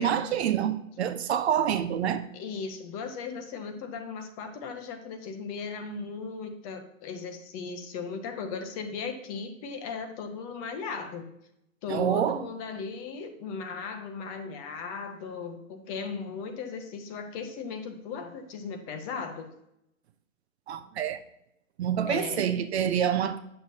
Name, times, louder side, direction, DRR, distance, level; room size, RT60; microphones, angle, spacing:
voice 1, 0.0-2.2 11.9-12.4 20.7-21.2 21.8-23.4, right 9 dB, 50° right, 0.6 m, -27 dB
voice 2, 2.3-11.3 11.8-19.5 22.1-22.5, left 5 dB, 25° left, 0.8 m, -37 dB
8.8 x 6.6 x 2.7 m
hypercardioid pair, 130°, 42 cm